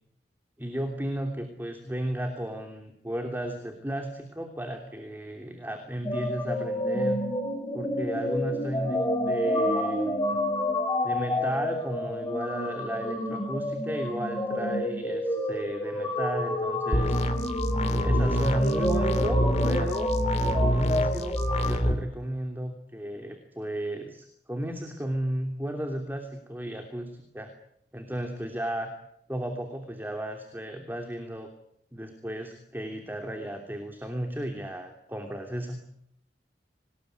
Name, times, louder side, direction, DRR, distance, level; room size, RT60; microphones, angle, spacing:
voice 1, 0.6-7.2 7.7-10.4 11.0-17.2 18.0-20.1 20.4-21.4 21.6-27.5 27.9-28.9 29.3-31.5 31.9-35.8, right 1 dB, 10° right, 4 dB, 2.9 m, -34 dB
sound 1, 6.0-21.7, left 1 dB, 20° left, 5.2 m, -29 dB
sound 2, 16.9-21.9, equal, 40° left, 2.8 m, -26 dB
26.5 x 20.0 x 9.6 m, 0.76 s
head